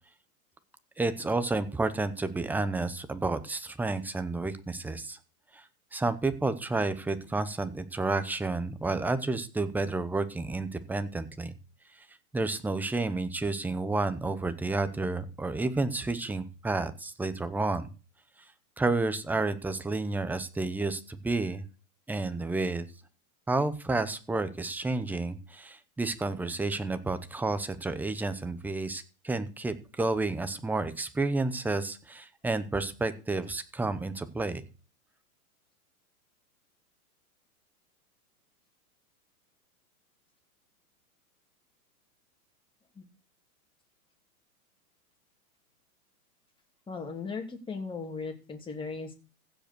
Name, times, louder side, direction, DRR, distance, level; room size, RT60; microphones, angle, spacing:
voice 1, 1.0-5.2 5.5-5.6 5.9-11.5 12.3-17.9 18.8-21.6 22.1-22.9 23.5-34.6, right 3 dB, 5° right, 11 dB, 0.7 m, -30 dB
voice 2, 46.9-49.1, left 4 dB, 10° left, 2 dB, 2.7 m, -37 dB
15.5 x 5.3 x 6.8 m, 0.35 s
supercardioid pair, 145°, 44 cm